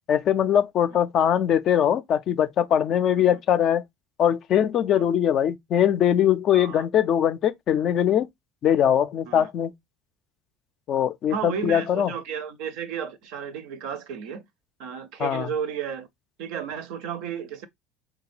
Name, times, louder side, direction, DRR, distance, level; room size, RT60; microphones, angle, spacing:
voice 1, 0.1-3.8 4.2-8.3 8.6-9.7 10.9-12.1 15.2-15.5, left 9 dB, 40° left, 0.4 m, -21 dB
voice 2, 6.5-6.8 9.3-9.5 11.3-14.4 14.8-16.1 16.4-17.7, right 7 dB, 55° right, 0.5 m, -33 dB
4.8 x 2.2 x 3.1 m
figure-of-eight pair, 65°, 0 cm